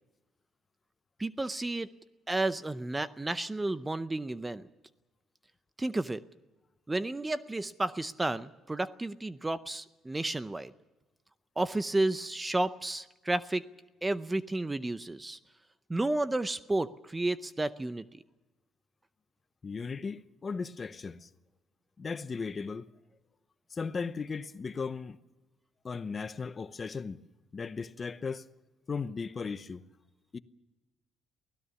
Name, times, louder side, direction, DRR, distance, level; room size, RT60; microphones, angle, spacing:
voice 1, 1.2-1.9 2.3-4.7 5.8-6.2 6.9-10.7 11.6-13.6 14.0-15.4 15.9-18.2, right 2 dB, 15° right, 0.6 m, -32 dB
voice 2, 19.6-21.3 22.0-22.9 23.7-25.2 25.8-27.2 27.5-28.5 28.9-29.8 30.3-30.4, left 5 dB, 30° left, 0.8 m, -36 dB
23.5 x 17.0 x 7.0 m
cardioid pair, 125°, 0 cm